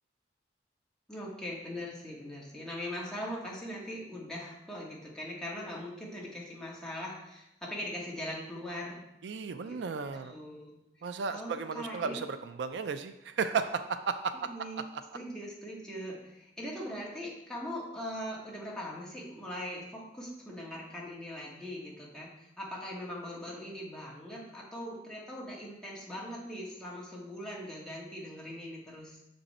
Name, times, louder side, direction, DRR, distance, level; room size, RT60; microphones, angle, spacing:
voice 1, 1.1-9.0 9.6-9.8 10.1-10.8 11.3-12.2 14.5-14.8 15.1-29.2, equal, 5° left, -5 dB, 1.7 m, -41 dB
voice 2, 9.2-10.4 11.0-14.3, right 5 dB, 75° right, 10 dB, 0.4 m, -34 dB
6.7 x 5.3 x 4.2 m, 0.87 s
head